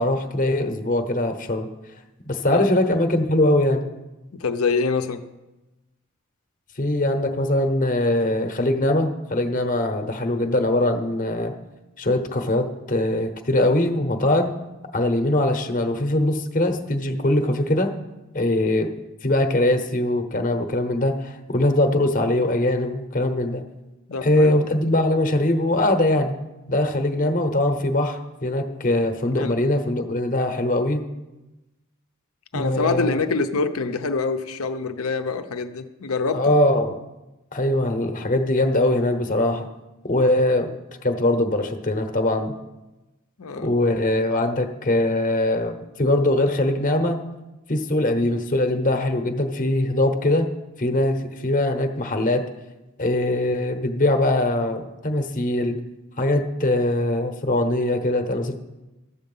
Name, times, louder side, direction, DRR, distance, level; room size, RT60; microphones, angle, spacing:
voice 1, 0.0-1.7 2.2-3.9 6.8-11.5 12.0-14.5 14.9-17.9 18.3-18.9 19.2-23.6 24.2-26.3 26.7-31.0 32.5-33.2 36.3-37.0 37.5-39.7 40.0-40.7 41.0-42.5 43.6-47.2 47.7-50.5 50.8-52.4 53.0-55.8 56.2-58.6, left 1 dB, 40° left, 7 dB, 0.9 m, -22 dB
voice 2, 4.3-5.2 24.1-24.5 29.3-29.5 32.5-36.6 43.4-43.7, left 4 dB, 75° left, 8 dB, 0.7 m, -25 dB
13.0 x 7.8 x 5.5 m, 1.0 s
head